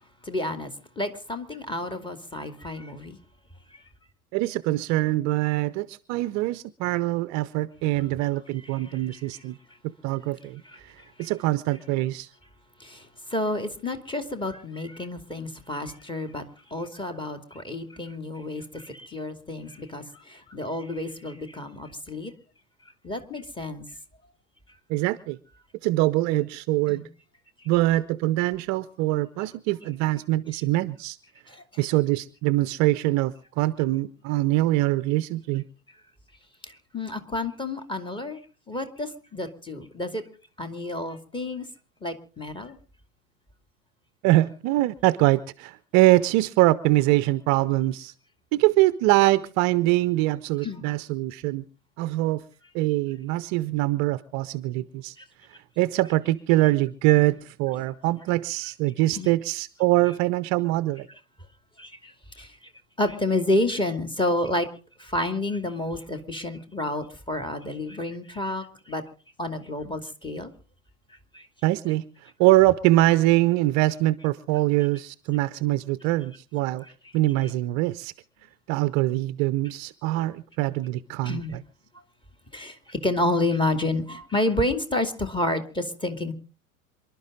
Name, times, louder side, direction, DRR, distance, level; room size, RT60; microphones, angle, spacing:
voice 1, 0.2-3.2 3.7-3.8 8.8-9.4 11.2-11.3 12.8-16.4 16.7-22.3 23.0-23.8 26.9-27.1 31.5-31.6 36.6-38.4 38.7-40.2 40.6-41.7 42.0-42.8 50.6-50.8 55.2-55.3 59.1-59.3 61.8-62.6 63.0-64.7 65.0-69.0 69.4-70.5 71.3-71.5 81.2-81.5 82.5-86.3, left 1 dB, 10° left, 8 dB, 2.5 m, -30 dB
voice 2, 4.3-9.6 10.0-12.3 24.9-25.4 25.8-27.1 27.7-31.2 31.8-35.6 44.2-48.1 48.5-51.6 52.0-52.4 52.7-55.2 55.8-61.1 71.6-76.8 77.1-78.1 78.7-81.6, right 17 dB, 40° right, 16 dB, 0.7 m, -23 dB
27.0 x 12.0 x 3.8 m, 0.37 s
figure-of-eight pair, 80°, 42 cm